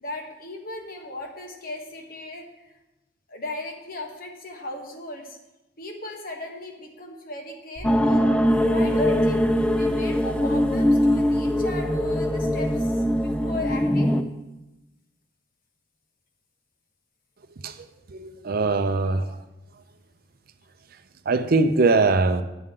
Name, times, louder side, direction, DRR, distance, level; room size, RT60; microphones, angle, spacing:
voice 1, 0.0-2.8 3.3-5.4 5.8-8.3 8.6-14.1 19.0-19.2, left 2 dB, 55° left, 1.4 m, -36 dB
sound 1, 7.8-14.2, equal, 5° left, 0.4 m, -22 dB
sound 2, 7.8-13.9, right 1 dB, 25° right, 3.0 m, -37 dB
voice 2, 18.1-19.2 21.3-22.4, right 3 dB, 55° right, 0.5 m, -21 dB
10.5 x 7.8 x 3.7 m
head